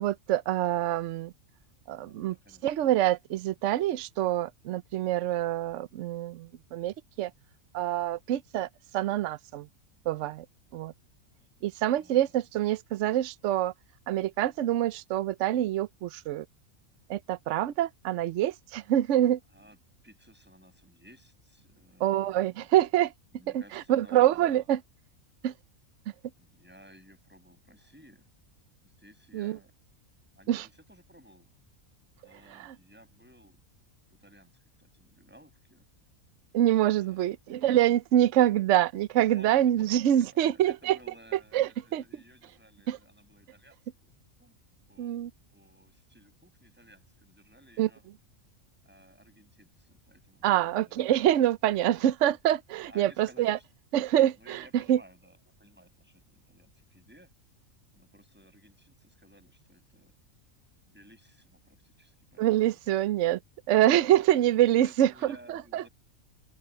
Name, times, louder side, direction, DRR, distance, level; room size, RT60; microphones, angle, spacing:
voice 1, 0.0-1.3 1.9-2.3 2.6-7.3 7.7-8.7 8.9-9.7 10.1-10.4 10.7-10.9 11.6-13.7 14.1-16.4 17.1-19.4 22.0-23.1 23.5-23.6 23.9-24.8 25.4-25.5 29.3-29.6 30.5-30.7 32.6-32.7 36.5-41.0 41.5-42.0 42.9-43.0 45.0-45.3 47.8-47.9 50.4-53.6 53.9-54.4 54.9-55.0 62.4-63.4 63.7-65.9, right 12 dB, 65° right, 0.9 m, -25 dB
voice 2, 1.9-2.9 11.9-12.4 19.5-19.8 20.0-22.7 23.3-24.6 26.4-28.3 28.8-29.7 30.4-31.5 32.2-33.6 34.0-35.9 36.8-37.3 39.2-44.1 44.4-44.6 44.9-45.2 45.5-48.0 48.8-51.0 52.8-53.6 54.4-57.3 57.9-60.1 60.9-62.8 64.8-65.9, equal, 5° right, 6.2 m, -57 dB
open air
omnidirectional pair, 1.4 m